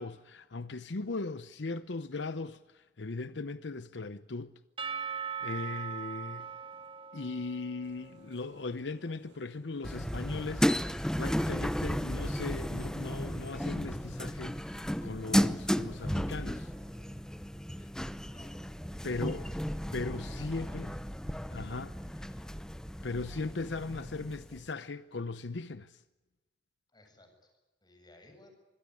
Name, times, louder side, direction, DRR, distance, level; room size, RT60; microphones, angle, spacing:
voice 1, 0.0-4.5 5.1-6.5 7.1-16.7 17.8-17.9 19.0-19.5 19.9-20.9 21.2-22.4 23.0-26.0, left 3 dB, 80° left, 0.8 m, -38 dB
Percussion / Church bell, 4.8-8.6, right 7 dB, 30° right, 1.9 m, -40 dB
sound 1, 7.8-17.7, equal, 75° right, 7.1 m, -56 dB
sound 2, 9.8-24.6, equal, 5° left, 0.9 m, -34 dB
voice 2, 18.3-18.6 19.1-19.4 20.2-20.7 26.9-27.5 27.8-28.5, left 1 dB, 25° left, 7.9 m, -57 dB
26.5 x 21.5 x 9.9 m
head